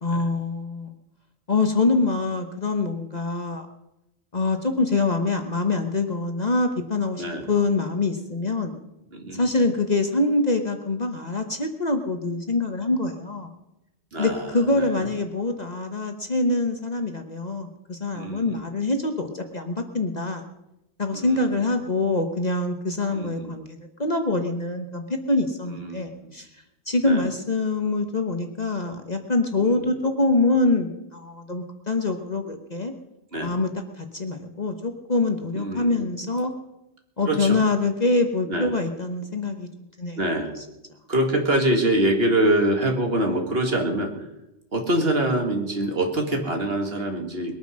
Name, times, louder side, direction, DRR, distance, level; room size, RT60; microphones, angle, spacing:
voice 1, 0.0-0.9 1.5-3.7 4.3-8.8 9.4-13.5 14.2-20.4 21.0-26.5 26.9-32.9 33.4-33.7 34.0-36.5 37.2-39.7 40.0-40.2, left 3 dB, 35° left, 5 dB, 1.2 m, -25 dB
voice 2, 7.2-7.5 9.1-9.6 14.1-15.1 18.1-18.6 21.1-21.6 23.1-23.6 25.7-26.3 27.0-27.3 29.6-29.9 33.3-33.5 35.5-36.1 37.3-37.6 38.4-38.7 40.2-40.5 41.1-44.1 44.7-47.5, right 1 dB, 50° right, 3 dB, 2.2 m, -25 dB
21.5 x 9.1 x 6.3 m, 0.91 s
omnidirectional pair, 1.3 m